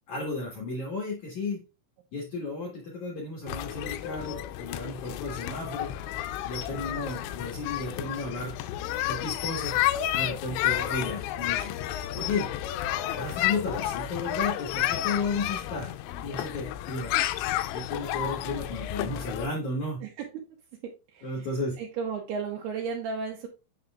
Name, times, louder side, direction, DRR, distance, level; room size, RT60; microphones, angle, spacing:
voice 1, 0.1-1.6 2.1-5.9 6.4-8.6 9.1-9.8 10.1-11.8 12.1-12.5 13.1-15.9 16.2-17.2 17.7-20.0 21.2-21.8, left 3 dB, 70° left, -2 dB, 1.8 m, -33 dB
sound 1, 3.5-19.5, left 13 dB, 85° left, 2.6 m, -31 dB
voice 2, 20.8-21.5 21.8-23.5, right 5 dB, 80° right, 0 dB, 2.4 m, -34 dB
6.8 x 6.0 x 2.3 m, 0.28 s
omnidirectional pair, 5.5 m